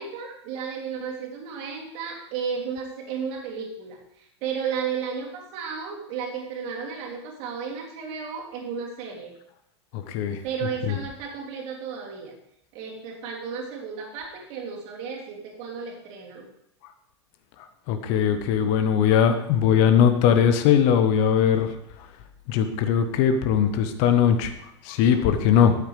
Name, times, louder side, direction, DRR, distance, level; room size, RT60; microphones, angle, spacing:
voice 1, 0.0-9.3 10.4-12.3 12.7-16.5 19.6-19.8, right 6 dB, 45° right, -1 dB, 3.0 m, -33 dB
voice 2, 9.9-10.4 10.9-11.0 17.9-21.7 22.5-24.5 24.8-25.7, left 8 dB, 45° left, 9 dB, 1.0 m, -20 dB
13.5 x 8.6 x 3.4 m, 0.75 s
figure-of-eight pair, 90°, 15 cm